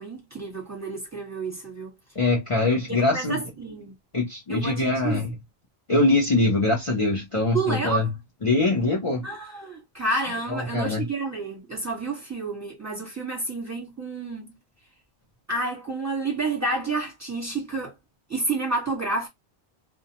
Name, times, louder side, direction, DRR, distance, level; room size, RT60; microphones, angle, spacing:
voice 1, 0.0-1.9 2.9-3.9 4.5-5.2 7.5-8.1 9.2-14.5 15.5-17.9 18.3-19.3, right 3 dB, 15° right, 1.1 m, -30 dB
voice 2, 2.2-3.4 4.1-5.3 5.9-8.1 8.4-9.2 10.5-11.0, left 2 dB, 35° left, 0.7 m, -23 dB
2.3 x 2.1 x 2.8 m
omnidirectional pair, 1.1 m